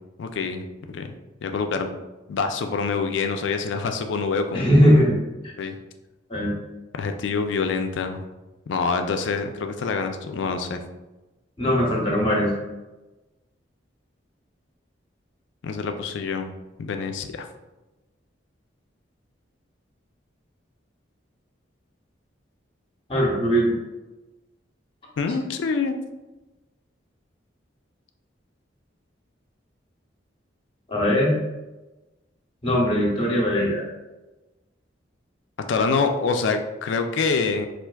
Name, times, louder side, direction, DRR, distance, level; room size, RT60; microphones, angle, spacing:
voice 1, 0.2-1.1 1.4-1.9 2.3-4.7 5.6-5.8 7.0-8.2 8.7-10.8 15.6-16.5 16.8-17.5 25.2-26.0 35.7-37.7, left 4 dB, 75° left, 6 dB, 0.4 m, -26 dB
voice 2, 4.5-5.2 6.3-6.5 11.6-12.5 23.1-23.8 30.9-31.4 32.6-33.9, equal, 30° left, -3 dB, 0.8 m, -20 dB
4.5 x 2.4 x 2.3 m, 1.1 s
head